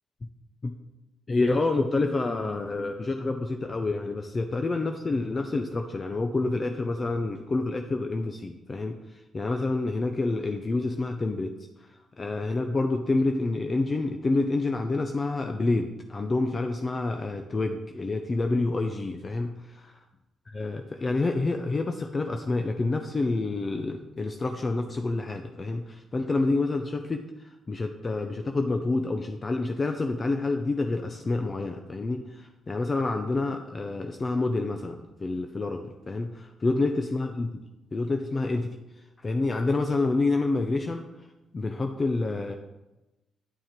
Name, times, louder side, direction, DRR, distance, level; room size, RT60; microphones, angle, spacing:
voice 1, 1.3-11.6 12.2-19.5 20.5-37.6 37.9-38.8 39.2-41.1 41.5-42.6, left 3 dB, 30° left, 5 dB, 0.6 m, -28 dB
9.2 x 6.3 x 4.4 m, 1.0 s
cardioid pair, 90°, 0 cm